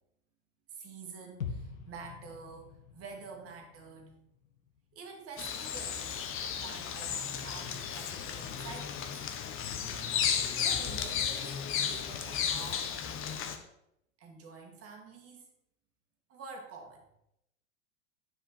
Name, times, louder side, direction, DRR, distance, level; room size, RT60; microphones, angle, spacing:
voice 1, 0.7-4.1 4.9-6.3 6.6-9.1 10.3-13.4 14.2-15.5 16.3-17.1, right 4 dB, 35° right, 1 dB, 2.2 m, -48 dB
sound 1, 1.4-5.3 5.7-5.8, left 6 dB, 80° left, 1.2 m, -45 dB
Bird vocalization bird call bird song, 5.4-13.6, left 8 dB, 30° left, 1.0 m, -34 dB
9.7 x 5.0 x 4.2 m, 0.81 s
hypercardioid pair, 90°, 40 cm